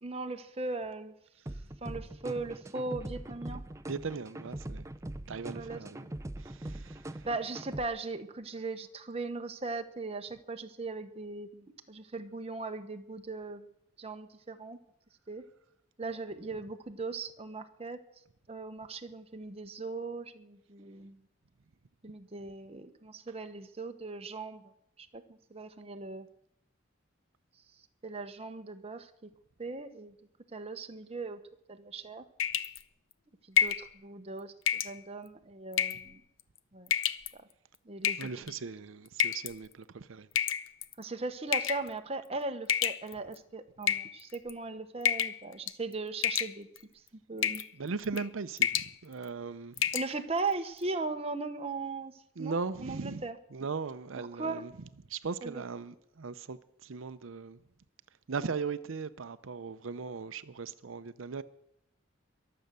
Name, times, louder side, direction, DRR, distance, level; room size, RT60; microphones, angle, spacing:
voice 1, 0.0-1.1 1.8-3.6 5.5-5.8 7.3-13.7 14.0-14.8 15.3-15.5 16.0-18.0 18.5-21.3 22.0-24.7 25.0-26.3 28.0-29.3 29.6-30.1 30.5-31.4 31.7-32.3 33.5-36.2 36.7-36.9 37.3-37.5 37.8-38.3 41.0-46.7 47.3-47.6 49.9-52.5 52.8-53.4 54.2-54.7 55.4-55.6, right 3 dB, 30° right, 1.0 m, -38 dB
sound 1, 1.5-7.9, right 1 dB, 15° right, 0.6 m, -42 dB
voice 2, 3.9-4.9 5.3-6.1 6.4-7.3 38.2-40.3 47.7-49.9 52.4-53.2 53.5-54.7 55.1-57.6 58.3-61.4, right 5 dB, 90° right, 0.6 m, -38 dB
sound 2, 32.4-32.8 33.6-33.9 34.7-34.9 35.7-36.1 36.9-37.3 38.0-38.5 39.2-39.5 40.4-40.9 41.5-41.9 42.7-43.3 43.8-44.5 45.0-45.4 45.7-45.9 46.2-46.8 47.4-47.7 48.0-48.3 48.6-48.9 49.3-49.4 49.8-50.1, left 8 dB, 80° left, 0.7 m, -29 dB
22.5 x 7.8 x 6.8 m
head